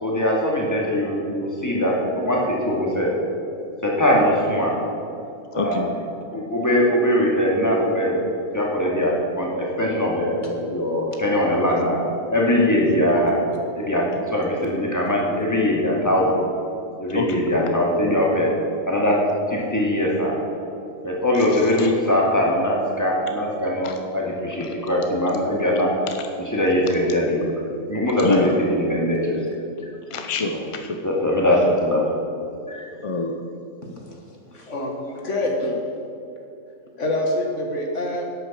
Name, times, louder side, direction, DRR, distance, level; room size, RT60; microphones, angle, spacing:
voice 1, 0.0-3.2 3.8-4.8 5.5-6.0 6.3-8.2 8.5-12.0 12.3-13.4 13.8-16.4 17.0-18.5 18.9-19.2 19.5-20.4 21.0-25.9 26.4-27.5 27.9-29.4 30.5-30.6 31.0-32.1 32.7-32.9, left 1 dB, 15° left, -2 dB, 2.3 m, -21 dB
voice 2, 5.6-5.9 17.1-17.4 21.8-21.9 23.8-23.9 28.2-28.5 30.1-31.0 33.0-33.4, left 3 dB, 35° left, 5 dB, 0.6 m, -25 dB
voice 3, 34.5-35.7 37.0-38.2, left 1 dB, 65° left, 1 dB, 2.1 m, -26 dB
11.5 x 8.6 x 7.5 m, 2.7 s
omnidirectional pair, 1.4 m